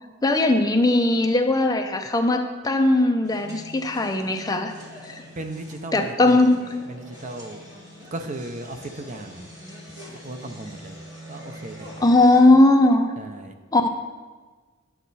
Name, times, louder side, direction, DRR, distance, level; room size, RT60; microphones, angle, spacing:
voice 1, 0.2-4.7 5.0-5.2 5.9-6.6 12.0-13.1 13.7-13.9, left 2 dB, 20° left, 5 dB, 0.6 m, -18 dB
sound 1, 3.2-12.4, left 1 dB, 20° right, 1.9 m, -43 dB
voice 2, 5.3-6.4 6.9-7.6 8.1-9.6 10.2-11.0 11.3-12.3 13.2-13.5, right 2 dB, 40° right, 6 dB, 0.6 m, -36 dB
10.0 x 7.2 x 4.1 m, 1.4 s
head